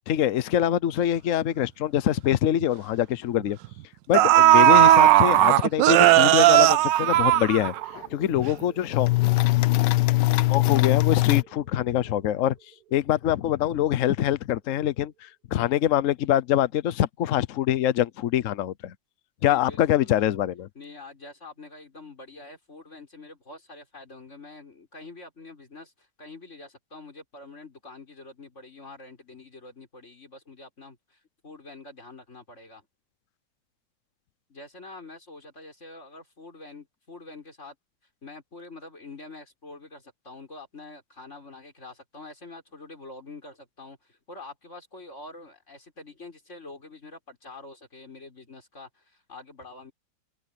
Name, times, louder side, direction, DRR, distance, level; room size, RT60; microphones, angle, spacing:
voice 1, 0.1-3.6 4.1-7.7 8.1-9.1 10.5-12.5 12.9-18.9 19.4-20.7, left 11 dB, 90° left, 0.6 m, -24 dB
sound 1, 2.0-2.1 2.4-2.6 3.6-3.7 4.1-8.1 8.4-8.5, right 14 dB, 70° right, 1.2 m, -16 dB
sound 2, 7.0-7.1 7.3-7.4 8.0-8.6 8.9-11.4, left 20 dB, 70° left, 1.1 m, -21 dB
sound 3, 7.0-15.3, right 13 dB, 45° right, 5.0 m, -51 dB
voice 2, 19.4-20.2 20.8-32.9 34.5-37.8 38.2-49.9, left 3 dB, 35° left, 5.4 m, -45 dB
omnidirectional pair, 2.3 m